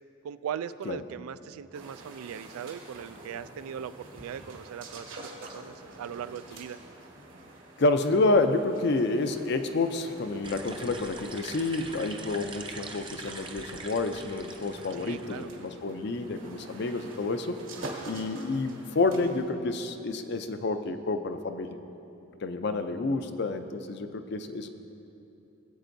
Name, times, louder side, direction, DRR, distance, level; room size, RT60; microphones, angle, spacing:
voice 1, 0.2-6.8 15.0-15.5, right 8 dB, 85° right, 15 dB, 0.3 m, -39 dB
sound 1, 1.7-19.5, right 2 dB, 65° right, 1.4 m, -47 dB
voice 2, 7.8-17.6 18.0-21.8 22.4-24.7, left 3 dB, 50° left, 8 dB, 0.5 m, -29 dB
sound 2, 10.4-15.4, right 3 dB, 25° right, 0.5 m, -43 dB
18.0 x 8.0 x 2.6 m, 2.9 s
head